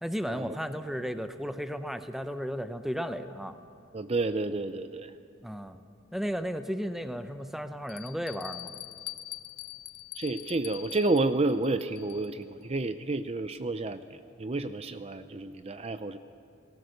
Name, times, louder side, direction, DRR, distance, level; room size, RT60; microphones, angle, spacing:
voice 1, 0.0-3.6 5.4-5.8 6.1-8.7, equal, ahead, 9 dB, 0.9 m, -34 dB
voice 2, 3.9-5.1 10.2-16.2, right 2 dB, 30° right, 10 dB, 0.6 m, -30 dB
Bell, 6.3-6.4 7.0-7.1 7.9-12.5, left 14 dB, 50° left, 0.5 m, -43 dB
29.5 x 19.0 x 6.6 m, 2.4 s
head